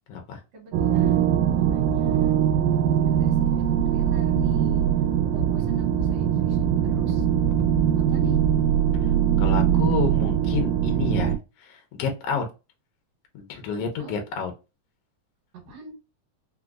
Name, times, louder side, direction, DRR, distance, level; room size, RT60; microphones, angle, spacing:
voice 1, 0.5-2.4 2.9-4.8 5.2-7.3 8.0-8.4 9.4-9.8 13.8-14.1 15.7-16.0, right 3 dB, 70° right, -3 dB, 2.0 m, -41 dB
sound 1, 0.7-11.4, right 9 dB, 85° right, 2.0 m, -22 dB
voice 2, 8.0-8.5 9.4-12.4 13.3-14.5, left 6 dB, 75° left, 3 dB, 1.4 m, -30 dB
4.8 x 2.0 x 2.3 m, 0.28 s
omnidirectional pair, 3.4 m